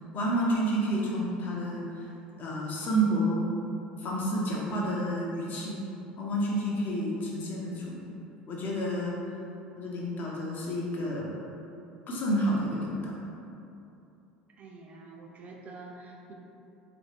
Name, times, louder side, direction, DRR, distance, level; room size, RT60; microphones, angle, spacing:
voice 1, 0.1-2.1 2.4-3.4 4.0-5.8 6.2-8.0 8.5-9.1 9.8-11.3 12.1-13.1, right 1 dB, 40° left, -4 dB, 0.8 m, -29 dB
voice 2, 14.6-16.3, right 3 dB, 35° right, -1 dB, 0.4 m, -47 dB
3.9 x 2.6 x 3.1 m, 2.8 s
figure-of-eight pair, 65°, 5 cm